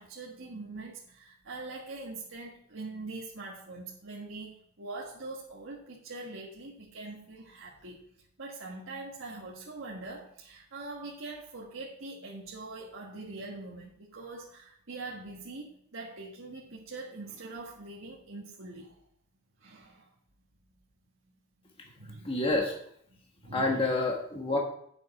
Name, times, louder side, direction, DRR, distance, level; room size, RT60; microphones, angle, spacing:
voice 1, 0.0-8.1 8.4-19.0 19.6-20.1 21.9-22.4 23.4-23.9, right 3 dB, 70° right, -3 dB, 1.6 m, -43 dB
voice 2, 22.2-22.8 23.5-24.6, left 2 dB, 25° left, 0 dB, 1.4 m, -28 dB
9.0 x 6.9 x 4.9 m, 0.65 s
head